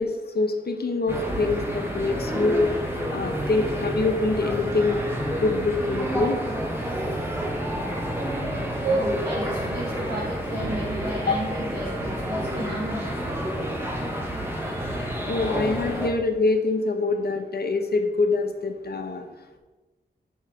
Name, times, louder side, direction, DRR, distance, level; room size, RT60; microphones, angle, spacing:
voice 1, 0.0-2.7 3.1-5.0 5.4-6.4 11.3-11.4 15.3-19.3, left 3 dB, 65° left, 5 dB, 1.0 m, -25 dB
sound 1, 1.1-16.1, equal, 15° right, 1.6 m, -29 dB
voice 2, 8.8-13.1 14.5-15.5, right 1 dB, 85° right, -8 dB, 2.3 m, -32 dB
6.4 x 5.6 x 4.9 m, 1.2 s
cardioid pair, 60°, 18 cm